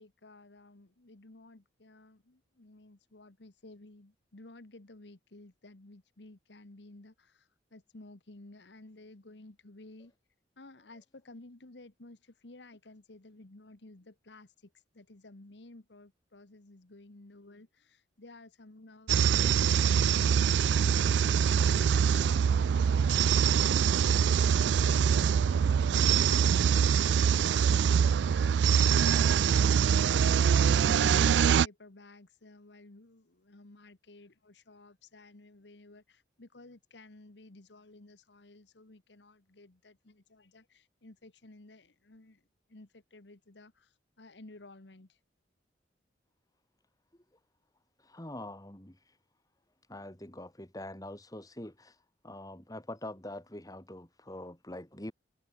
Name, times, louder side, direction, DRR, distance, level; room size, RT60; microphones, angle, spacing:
voice 1, 0.0-10.1 10.6-14.5 14.9-25.2 29.8-42.4 42.7-43.9 44.2-45.1, left 2 dB, 75° left, 1.5 m, -54 dB
sound 1, 19.1-31.7, right 7 dB, 75° right, 0.3 m, -24 dB
voice 2, 48.0-49.2 49.9-55.1, left 1 dB, 20° left, 3.0 m, -44 dB
head